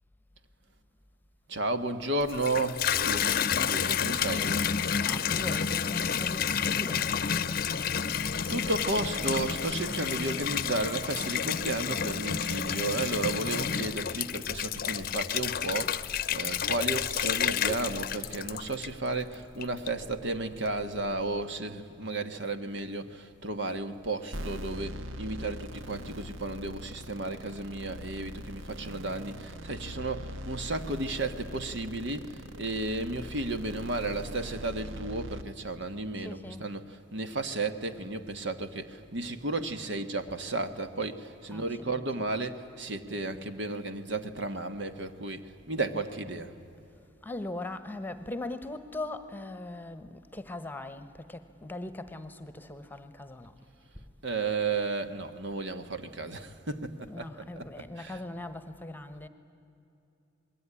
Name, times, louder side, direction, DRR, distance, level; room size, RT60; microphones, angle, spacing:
voice 1, 1.5-4.5 7.9-8.2 8.5-46.5 54.2-58.2, right 2 dB, 60° right, 9 dB, 1.5 m, -33 dB
Water tap faucet / Bathtub (filling or washing), 2.2-19.1 19.6-20.2, left 7 dB, 45° left, 0.8 m, -30 dB
voice 2, 4.9-7.6 36.2-36.7 41.5-42.0 47.2-53.5 57.1-59.3, left 2 dB, 10° left, 11 dB, 1.2 m, -40 dB
sound 1, 24.3-35.4, equal, 80° right, 1.4 m, -41 dB
27.5 x 21.0 x 9.8 m, 2.7 s
head